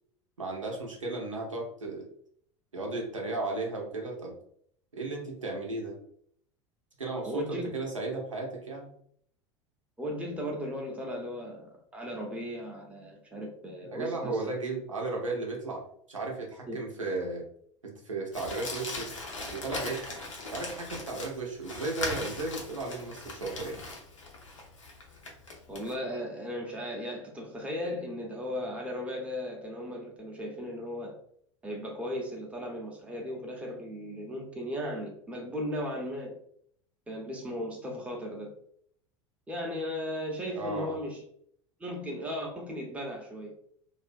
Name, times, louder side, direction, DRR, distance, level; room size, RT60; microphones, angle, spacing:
voice 1, 0.4-2.1 2.7-4.4 4.9-6.0 7.0-8.9 13.8-17.4 17.8-19.1 19.5-20.2 20.5-23.9 40.5-41.0, right 3 dB, 80° right, 0 dB, 0.6 m, -35 dB
voice 2, 7.2-7.7 10.0-14.5 16.7-16.8 25.7-31.2 31.6-36.3 37.1-38.5 39.5-41.2 41.8-43.5, equal, 10° right, 0 dB, 0.6 m, -36 dB
Crumpling crinkling, 18.3-25.9, left 2 dB, 75° left, 0.6 m, -39 dB
2.4 x 2.1 x 2.4 m, 0.66 s
figure-of-eight pair, 80°, 16 cm